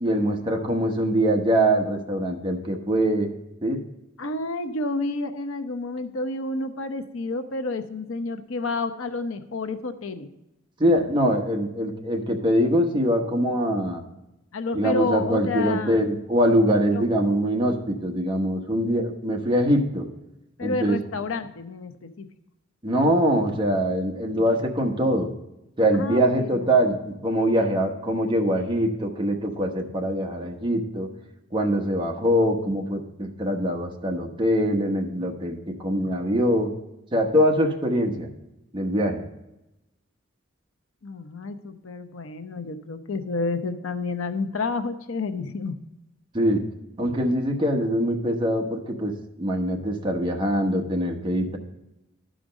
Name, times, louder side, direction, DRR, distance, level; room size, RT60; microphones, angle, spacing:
voice 1, 0.0-3.3 3.6-3.8 10.8-14.0 14.7-20.0 20.6-21.0 22.8-25.3 25.8-31.1 31.5-36.7 37.1-38.3 38.7-39.2 46.3-46.6 47.0-49.1 49.4-51.6, equal, 25° right, 2 dB, 1.1 m, -23 dB
voice 2, 4.2-10.3 14.5-16.0 16.9-17.0 20.6-22.3 25.9-26.7 41.0-45.8, left 3 dB, 85° left, 9 dB, 0.7 m, -30 dB
12.0 x 5.1 x 5.0 m, 0.92 s
head